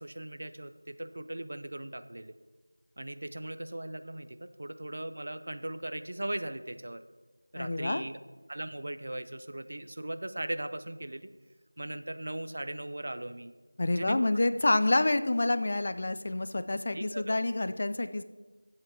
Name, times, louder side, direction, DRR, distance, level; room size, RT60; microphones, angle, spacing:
voice 1, 0.0-2.3 3.0-7.0 7.5-8.2 8.5-11.3 11.8-13.5 13.9-14.3 16.9-17.4, right 1 dB, 40° right, 11 dB, 0.6 m, -38 dB
voice 2, 7.5-8.0 13.8-18.2, left 2 dB, 30° left, 12 dB, 0.4 m, -28 dB
11.5 x 7.8 x 4.4 m, 1.3 s
figure-of-eight pair, 175°, 0 cm